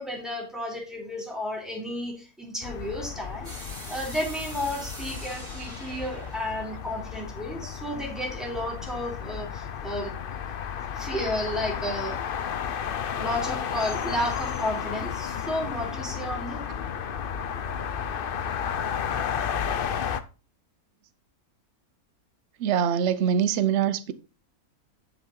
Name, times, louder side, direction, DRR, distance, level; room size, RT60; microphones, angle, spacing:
voice 1, 0.0-3.5 3.9-10.2 11.0-12.2 13.2-16.6, left 1 dB, ahead, 2.9 m, -32 dB
sound 1, 2.6-20.2, left 8 dB, 55° left, 0.6 m, -33 dB
sound 2, 3.4-8.3, right 1 dB, 30° right, 3.5 m, -44 dB
voice 2, 22.6-24.1, right 8 dB, 55° right, 0.9 m, -23 dB
10.5 x 5.6 x 3.8 m
omnidirectional pair, 1.6 m